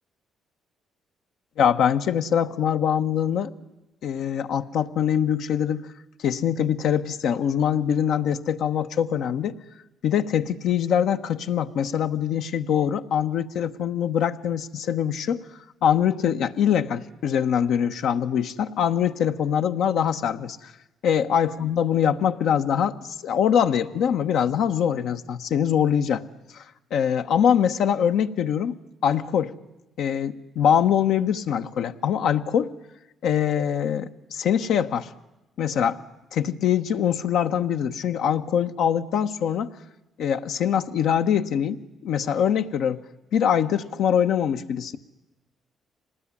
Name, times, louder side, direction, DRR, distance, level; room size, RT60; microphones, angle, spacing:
voice 1, 1.6-3.5 4.0-5.9 6.2-9.5 10.0-15.4 15.8-20.7 21.0-23.0 23.2-26.2 26.5-26.6 26.9-28.7 29.0-29.5 30.0-32.7 33.2-35.1 35.6-36.0 36.3-39.7 40.2-43.0 43.3-45.0, left 8 dB, 80° left, 7 dB, 1.2 m, -23 dB
25.0 x 19.5 x 9.8 m, 0.99 s
cardioid pair, 90°, 0 cm